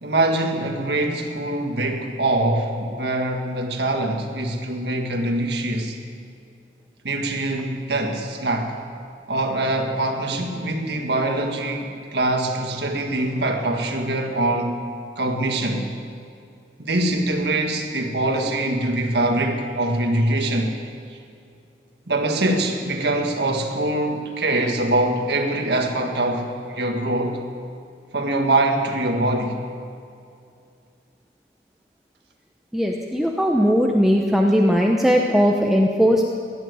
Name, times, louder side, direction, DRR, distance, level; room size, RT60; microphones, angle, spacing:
voice 1, 0.0-6.0 7.0-8.8 9.3-14.8 15.2-15.9 16.8-20.7 21.1-21.2 22.1-27.4 28.1-29.6, right 1 dB, 65° right, 3 dB, 1.8 m, -23 dB
voice 2, 32.7-36.2, equal, ahead, 0 dB, 0.8 m, -18 dB
16.5 x 10.5 x 8.1 m, 2.4 s
head